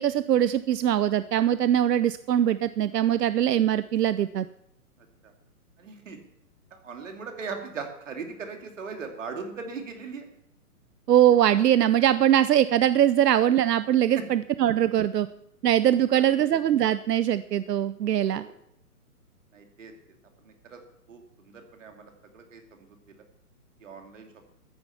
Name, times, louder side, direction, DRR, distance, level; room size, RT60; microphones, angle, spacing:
voice 1, 0.0-4.5 11.1-15.3 15.6-18.4, right 11 dB, 90° right, 14 dB, 0.7 m, -22 dB
voice 2, 5.8-6.2 6.7-10.3 14.2-14.3 16.1-16.4 18.2-18.5 19.5-19.9 20.4-20.8 21.1-23.2 23.8-24.5, right 5 dB, 55° right, 4 dB, 2.6 m, -39 dB
13.5 x 10.0 x 5.8 m, 0.77 s
hypercardioid pair, 170°, 47 cm